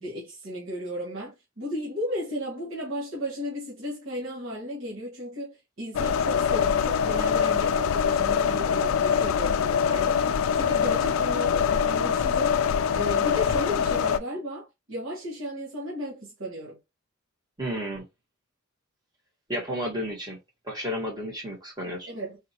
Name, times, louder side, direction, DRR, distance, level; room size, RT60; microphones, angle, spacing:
voice 1, 0.0-12.7 12.9-16.8 22.1-22.4, equal, 65° right, 1.5 m, -35 dB
sound 1, 5.9-14.2, left 7 dB, 75° left, 0.4 m, -24 dB
voice 2, 17.6-18.0 19.5-20.4 20.6-22.1, equal, 20° right, 1.5 m, -32 dB
4.1 x 2.8 x 2.9 m
head